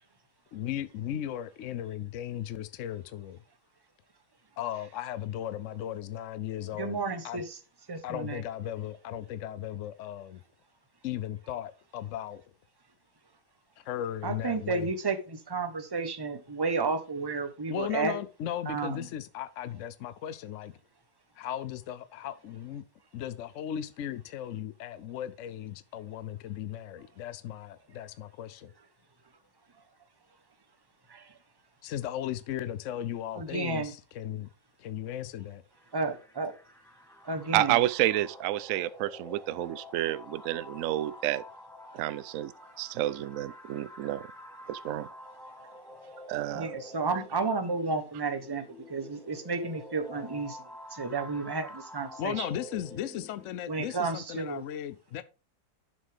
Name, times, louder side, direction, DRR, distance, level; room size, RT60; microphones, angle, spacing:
voice 1, 0.5-3.4 4.6-7.4 8.0-10.4 11.0-12.4 13.8-14.9 17.7-20.7 21.3-22.8 23.1-28.7 31.8-34.5 34.8-35.6 52.2-55.2, left 11 dB, 70° left, 0.7 m, -36 dB
voice 2, 6.8-7.4 7.9-8.4 14.2-18.2 18.7-19.0 31.1-31.3 33.3-33.9 35.9-36.5 37.2-37.8 41.9-42.0 46.5-50.6 50.9-52.5 53.7-54.6, right 4 dB, 20° right, 0.8 m, -32 dB
sound 1, 35.7-53.7, left 1 dB, ahead, 1.2 m, -48 dB
voice 3, 37.5-41.4 41.9-42.5 42.8-44.3 44.7-45.1 46.3-46.7, right 14 dB, 70° right, 0.8 m, -29 dB
11.0 x 6.4 x 3.5 m
omnidirectional pair, 1.8 m